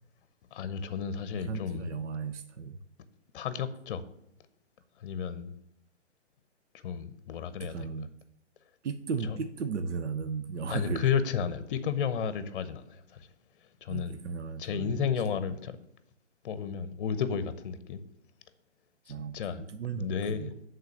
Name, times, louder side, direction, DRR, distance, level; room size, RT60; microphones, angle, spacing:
voice 1, 0.5-1.9 3.3-4.0 5.0-5.6 6.7-7.9 9.3-9.4 10.7-13.3 13.8-14.2 14.6-15.8 16.4-18.0 19.1-19.6 19.9-20.6, left 7 dB, 50° left, 0.8 m, -32 dB
voice 2, 1.4-2.8 7.6-8.1 8.8-11.1 13.9-15.1 19.1-20.5, right 5 dB, 75° right, 0.7 m, -35 dB
8.2 x 3.8 x 6.5 m
hypercardioid pair, 135°, 35 cm